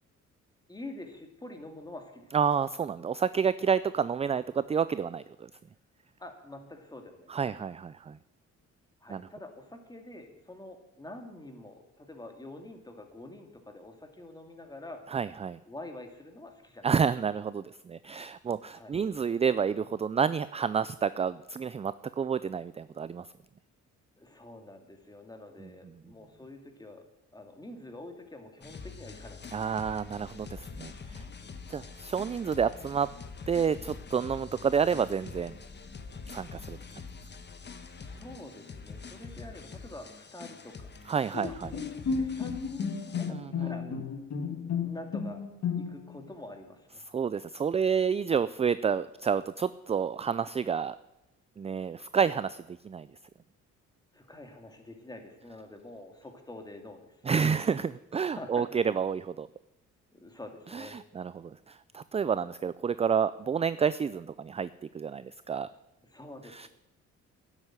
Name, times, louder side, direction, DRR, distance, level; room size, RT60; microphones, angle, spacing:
voice 1, 0.7-2.3 6.2-7.3 9.0-15.0 15.7-16.9 18.7-19.0 24.2-27.0 27.3-29.4 31.7-31.9 37.9-40.9 41.4-44.1 44.7-45.4 45.7-47.0 54.1-57.2 58.2-58.7 60.1-61.0 66.0-66.7, left 1 dB, 15° left, 4 dB, 2.4 m, -46 dB
voice 2, 2.3-5.5 7.3-8.2 9.1-9.3 15.1-15.6 16.8-23.3 29.5-31.2 31.7-33.1 33.5-35.5 36.3-36.8 41.1-41.7 43.3-43.7 47.1-51.0 51.6-53.1 57.2-59.5 60.7-64.7 64.9-65.7 66.5-66.7, right 6 dB, 20° right, 16 dB, 0.4 m, -29 dB
sound 1, 28.6-43.3, left 4 dB, 35° left, 1.3 m, -45 dB
Bowed string instrument, 41.3-46.2, left 6 dB, 55° left, 2.0 m, -33 dB
11.0 x 8.1 x 9.2 m, 0.92 s
cardioid pair, 90°, 30 cm